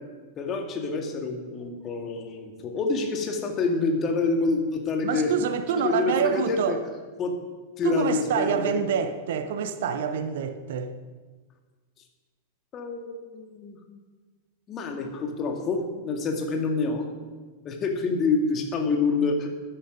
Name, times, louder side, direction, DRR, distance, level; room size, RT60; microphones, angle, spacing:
voice 1, 0.4-5.3 5.8-6.8 7.2-7.3 7.8-8.8 12.7-13.8 14.7-17.1 17.6-19.5, left 4 dB, 30° left, 2.2 m, -27 dB
voice 2, 5.0-6.8 7.8-10.9, right 7 dB, 55° right, 0.9 m, -27 dB
13.5 x 10.0 x 5.1 m
figure-of-eight pair, 90°, 0 cm